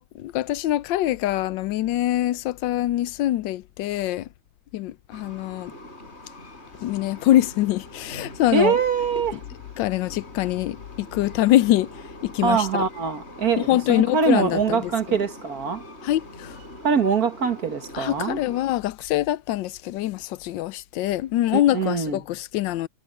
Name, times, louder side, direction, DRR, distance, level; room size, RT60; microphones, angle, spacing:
voice 1, 0.0-4.3 4.7-5.7 6.8-8.8 9.3-9.4 9.8-12.9 13.6-15.2 16.0-16.6 17.9-22.9, left 14 dB, 85° left, 1.3 m, -24 dB
Train, 5.1-18.6, left 1 dB, 35° left, 6.2 m, -43 dB
voice 2, 8.5-9.4 12.4-15.8 16.8-18.4 21.5-22.2, right 5 dB, 55° right, 2.0 m, -23 dB
omnidirectional pair, 1.9 m